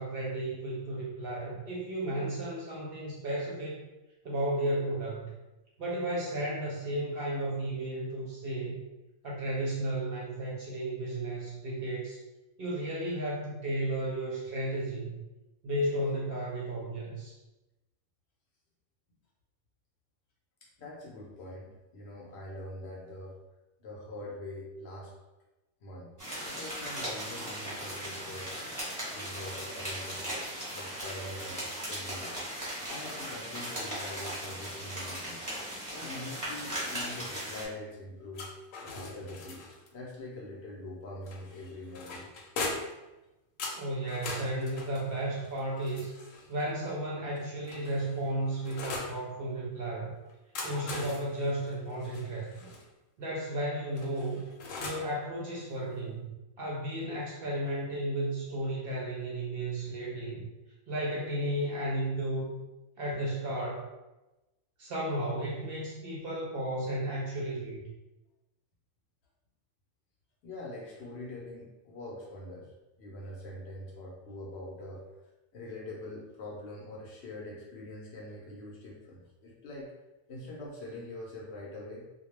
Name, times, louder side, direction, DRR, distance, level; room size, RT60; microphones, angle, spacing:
voice 1, 0.0-3.8 4.2-5.3 5.8-8.8 9.2-12.2 12.6-15.2 15.6-17.3 43.7-46.1 46.5-50.1 50.6-52.7 53.2-54.5 54.8-56.3 56.6-60.4 60.9-62.6 63.0-63.9 64.8-67.9, right 1 dB, 60° right, -4 dB, 0.7 m, -33 dB
voice 2, 20.8-23.4 23.8-25.1 25.8-26.1 26.4-28.5 29.1-30.4 30.7-32.3 32.9-35.4 35.9-38.5 38.8-42.3 63.1-63.2 70.4-72.7 73.0-75.1 75.5-79.9 80.3-82.1, left 1 dB, 65° left, -3 dB, 0.8 m, -43 dB
sound 1, 26.2-37.7, equal, 15° right, 0.8 m, -38 dB
sound 2, 38.3-39.9 41.3-43.0 43.6-46.5 47.3-49.2 50.3-52.8 54.0-55.1, left 3 dB, 90° left, 1.0 m, -41 dB
2.3 x 2.2 x 3.0 m, 1.0 s
omnidirectional pair, 1.3 m